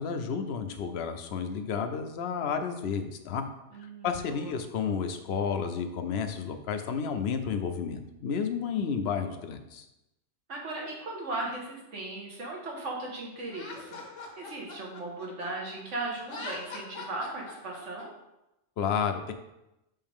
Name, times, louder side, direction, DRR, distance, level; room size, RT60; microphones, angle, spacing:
voice 1, 0.0-3.4 4.0-9.9 18.8-19.3, left 6 dB, 60° left, 7 dB, 0.8 m, -31 dB
voice 2, 3.7-4.5 10.5-18.1, right 2 dB, 75° right, -2 dB, 1.7 m, -37 dB
Laughter, 13.5-15.8 16.2-18.0, left 3 dB, 85° left, 1.4 m, -42 dB
5.5 x 5.3 x 3.5 m, 0.92 s
omnidirectional pair, 1.3 m